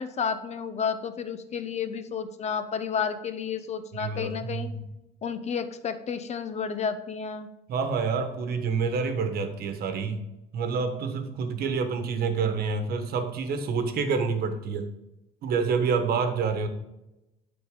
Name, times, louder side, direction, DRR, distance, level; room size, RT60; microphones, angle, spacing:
voice 1, 0.0-4.7 5.2-7.5, left 6 dB, 40° left, 10 dB, 0.7 m, -31 dB
voice 2, 4.0-4.8 7.7-10.2 10.5-14.9 15.4-16.7, right 5 dB, 65° right, 8 dB, 1.2 m, -28 dB
12.0 x 4.0 x 3.7 m, 0.93 s
cardioid pair, 110°, 17 cm